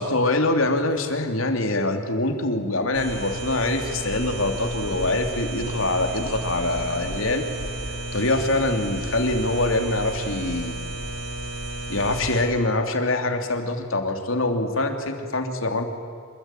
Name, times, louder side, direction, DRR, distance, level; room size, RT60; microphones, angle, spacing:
voice 1, 0.0-7.4 8.1-10.8 11.9-15.9, left 2 dB, 80° left, 5 dB, 3.2 m, -24 dB
sound 1, 2.9-12.4, right 1 dB, 60° right, 6.7 m, -32 dB
27.0 x 24.0 x 9.2 m, 2.2 s
head